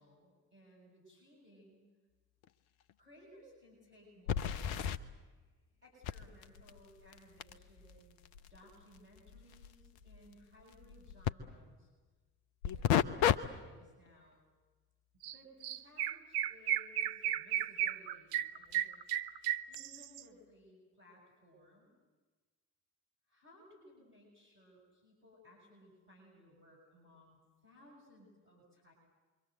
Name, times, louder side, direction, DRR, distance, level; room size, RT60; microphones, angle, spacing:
voice 1, 0.0-1.9 3.0-8.2 8.5-11.9 12.7-14.5 15.3-19.3 19.7-22.0 23.3-28.9, left 1 dB, 90° right, -6 dB, 7.0 m, -61 dB
sound 1, 2.4-2.5 2.9-3.0 4.3-5.0 6.0-11.3 12.6-13.4 13.8-14.1 18.7-18.8 19.7-19.8, left 10 dB, 65° left, 1.1 m, -35 dB
Chirp tweet, 15.2-15.4 15.6-20.2, right 11 dB, 60° right, 1.0 m, -34 dB
28.5 x 24.0 x 7.9 m, 1.3 s
figure-of-eight pair, 45°, 45 cm